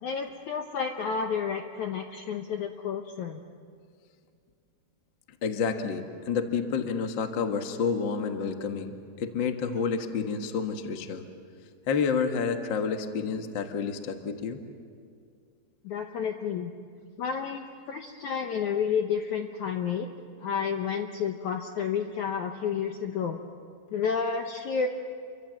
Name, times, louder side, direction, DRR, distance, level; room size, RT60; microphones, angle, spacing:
voice 1, 0.0-3.4 15.8-16.7 17.2-20.1 20.4-23.4 23.9-24.9, left 6 dB, 70° left, 4 dB, 1.8 m, -30 dB
voice 2, 5.4-11.2 11.9-14.6, left 5 dB, 55° left, 5 dB, 1.3 m, -29 dB
29.5 x 24.5 x 7.7 m, 2.2 s
omnidirectional pair, 4.7 m